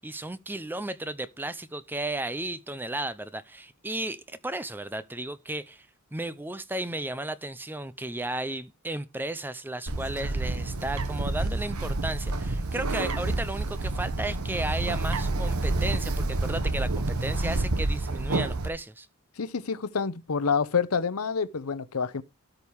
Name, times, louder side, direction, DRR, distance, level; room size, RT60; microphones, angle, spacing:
voice 1, 0.0-19.1, right 2 dB, 10° right, 0.5 m, -34 dB
Bird, 9.9-18.7, right 2 dB, 85° right, 1.1 m, -28 dB
voice 2, 19.4-22.2, left 5 dB, 85° left, 0.8 m, -28 dB
13.0 x 5.3 x 4.7 m
head